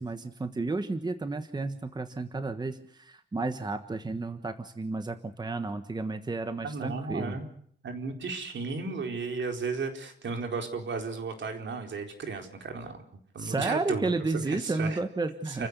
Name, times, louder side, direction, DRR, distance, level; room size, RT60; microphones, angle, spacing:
voice 1, 0.0-7.4 13.4-15.7, right 3 dB, 20° right, 8 dB, 1.3 m, -32 dB
voice 2, 6.6-7.5 7.8-13.0 13.3-15.0 15.5-15.7, right 4 dB, 75° right, 4 dB, 4.2 m, -34 dB
29.5 x 15.5 x 8.2 m, 0.66 s
wide cardioid pair, 170°, 19 cm